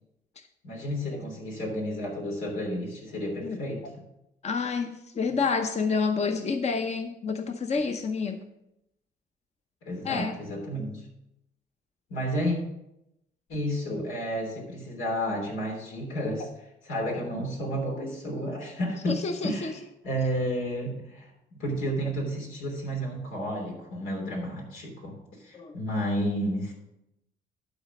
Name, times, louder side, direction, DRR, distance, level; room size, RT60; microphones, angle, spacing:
voice 1, 0.6-3.9 9.8-11.1 12.1-12.6 13.5-16.5 16.8-19.7 20.0-26.7, equal, 90° left, -1 dB, 3.2 m, -31 dB
voice 2, 4.4-8.4 10.0-10.4 19.1-19.7 25.5-25.8, left 4 dB, 35° left, 7 dB, 0.7 m, -28 dB
12.0 x 4.1 x 6.4 m, 0.86 s
cardioid pair, 90°, 20 cm